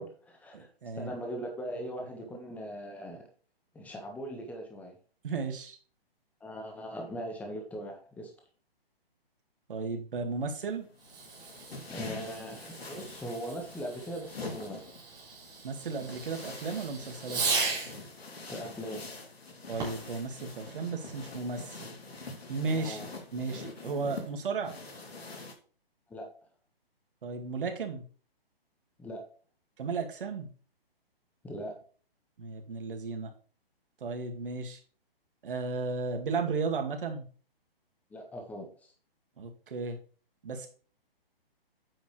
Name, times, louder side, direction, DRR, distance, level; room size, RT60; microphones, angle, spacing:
voice 1, 0.0-0.7 1.0-3.3 3.7-4.9 6.4-8.3 11.9-15.0 18.3-19.0 22.7-23.0 26.1-26.3 29.0-29.2 31.4-31.7 38.1-38.7, equal, 5° left, 2 dB, 1.5 m, -40 dB
voice 2, 0.5-1.1 5.2-5.8 9.7-10.9 15.6-17.4 19.7-21.9 22.5-23.0 23.3-24.7 27.2-28.0 29.8-30.5 32.4-33.3 34.0-34.8 35.4-37.3 39.4-40.0 40.4-40.7, right 4 dB, 60° right, 4 dB, 2.3 m, -34 dB
sound 1, 10.6-25.5, left 3 dB, 85° left, 3.1 m, -45 dB
Fireworks, 11.0-18.1 19.7-20.2, right 4 dB, 15° right, 3.8 m, -37 dB
8.9 x 7.2 x 3.3 m, 0.41 s
hypercardioid pair, 150°, 30 cm